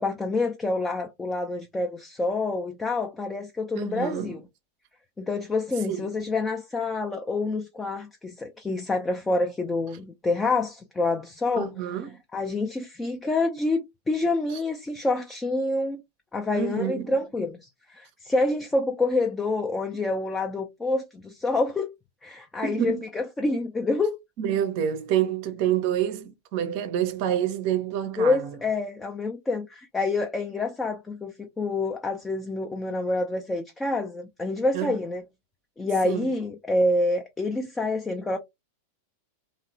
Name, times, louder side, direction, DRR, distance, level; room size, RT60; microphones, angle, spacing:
voice 1, 0.0-4.4 5.2-11.7 12.3-16.0 16.3-21.9 22.2-24.2 28.2-35.2 35.8-38.4, left 2 dB, 10° left, 0.4 m, -27 dB
voice 2, 3.7-4.4 5.9-6.1 11.6-12.2 16.5-17.1 22.6-23.0 24.4-28.6 34.7-35.0 36.0-36.3, right 10 dB, 45° right, 0.5 m, -28 dB
2.8 x 2.0 x 2.5 m
figure-of-eight pair, 90°, 0 cm